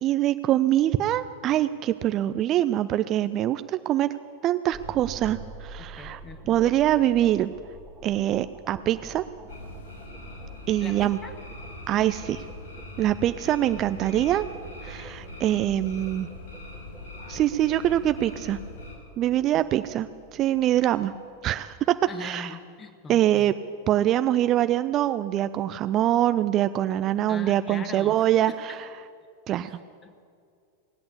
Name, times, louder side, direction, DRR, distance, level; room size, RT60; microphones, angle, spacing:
voice 1, 0.0-4.1 4.4-6.2 6.5-7.5 8.0-9.2 10.7-11.2 11.9-12.4 13.0-14.4 14.8-16.3 17.3-18.6 19.2-21.1 21.4-21.8 22.2-22.6 23.1-23.5 23.9-28.9 29.5-29.7, right 12 dB, 35° right, 12 dB, 0.4 m, -24 dB
sound 1, 4.7-22.0, right 2 dB, 10° right, 1.9 m, -46 dB
voice 2, 5.8-6.6 10.8-11.3 22.1-23.5 27.3-28.6 29.7-30.2, left 4 dB, 20° left, 7 dB, 1.4 m, -42 dB
sound 2, 9.5-18.9, left 2 dB, 60° left, 4.9 m, -42 dB
18.5 x 8.6 x 8.3 m, 2.3 s
figure-of-eight pair, 90°, 0 cm